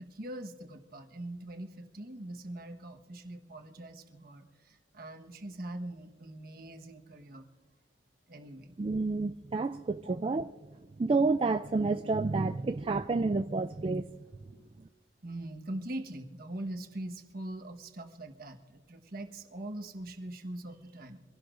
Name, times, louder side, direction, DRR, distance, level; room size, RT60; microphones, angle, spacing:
voice 1, 0.0-7.5 8.3-8.7 10.0-10.2 15.2-21.2, right 1 dB, 55° right, 1.3 m, -42 dB
voice 2, 8.8-10.5 11.0-14.1, right 3 dB, 30° right, 0.3 m, -29 dB
25.0 x 16.5 x 2.6 m
head